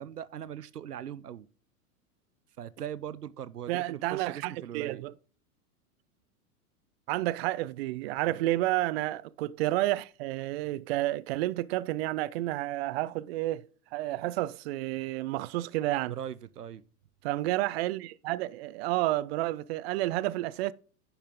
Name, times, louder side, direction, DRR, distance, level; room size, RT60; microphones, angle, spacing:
voice 1, 0.0-1.5 2.6-5.0 8.3-8.5 16.1-16.8, right 10 dB, 85° right, 0.6 m, -40 dB
voice 2, 3.7-5.1 7.1-13.6 13.9-16.1 17.2-20.7, right 16 dB, 45° right, 0.4 m, -30 dB
10.0 x 5.6 x 3.6 m
figure-of-eight pair, 95°, 46 cm